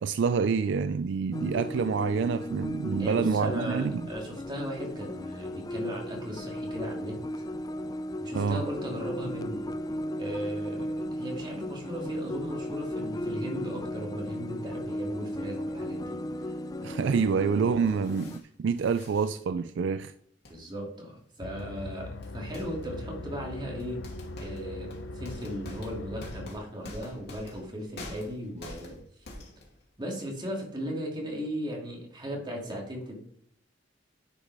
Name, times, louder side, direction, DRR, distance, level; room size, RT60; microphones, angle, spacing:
voice 1, 0.0-4.1 8.3-8.6 16.8-20.1, right 5 dB, 70° right, 0.4 m, -27 dB
sound 1, 1.3-18.4, left 1 dB, 20° left, 0.3 m, -36 dB
voice 2, 3.0-7.4 8.2-9.7 10.2-16.5 20.5-24.1 24.4-29.0 30.0-33.2, equal, 25° right, 2.5 m, -37 dB
sound 2, 17.8-18.4 18.7-19.3 20.4-20.6 21.6-21.7 22.2-22.9 23.8-29.8, left 2 dB, 60° left, 2.5 m, -46 dB
sound 3, 21.4-26.5, left 2 dB, 85° left, 0.7 m, -40 dB
10.5 x 5.2 x 4.8 m
head